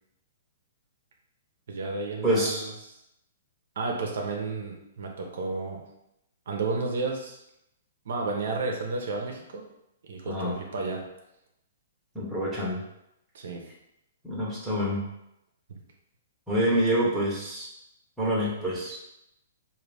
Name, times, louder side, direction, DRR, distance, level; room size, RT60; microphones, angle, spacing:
voice 1, 1.7-2.7 3.8-5.8 6.5-7.4 8.1-9.7 10.0-11.0 13.3-13.6 15.7-15.8, right 3 dB, 70° right, 1 dB, 0.8 m, -32 dB
voice 2, 2.2-2.6 10.2-10.6 12.1-12.8 14.2-15.0 16.5-17.7 18.2-19.0, equal, 5° right, -8 dB, 1.0 m, -26 dB
3.9 x 2.7 x 3.4 m, 0.82 s
hypercardioid pair, 160°, 0 cm